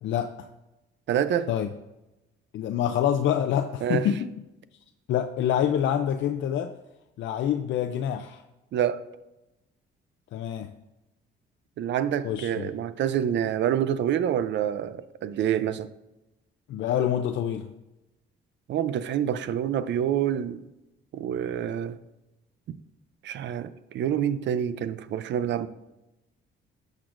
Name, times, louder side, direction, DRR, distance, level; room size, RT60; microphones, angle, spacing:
voice 1, 0.0-0.5 1.5-1.7 2.5-4.3 5.1-6.7 7.2-8.4 10.3-10.7 12.2-12.7 16.7-17.7, left 9 dB, 70° left, 0.5 m, -26 dB
voice 2, 1.1-1.5 3.8-4.1 8.7-9.0 11.8-15.9 18.7-20.6 21.1-22.0 22.7-22.8 23.2-25.7, right 9 dB, 65° right, 0.5 m, -27 dB
12.0 x 6.5 x 2.5 m
cardioid pair, 90°, 20 cm